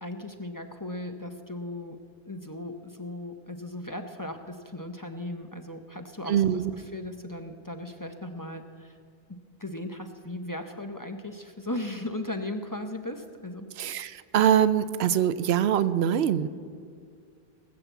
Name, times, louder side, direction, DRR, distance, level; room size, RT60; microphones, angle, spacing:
voice 1, 0.0-2.0 2.3-9.0 9.3-13.7, left 1 dB, 20° left, 6 dB, 0.7 m, -37 dB
voice 2, 6.3-6.7 13.8-16.5, right 9 dB, 80° right, 14 dB, 0.9 m, -23 dB
18.5 x 7.4 x 8.1 m, 2.2 s
omnidirectional pair, 1.1 m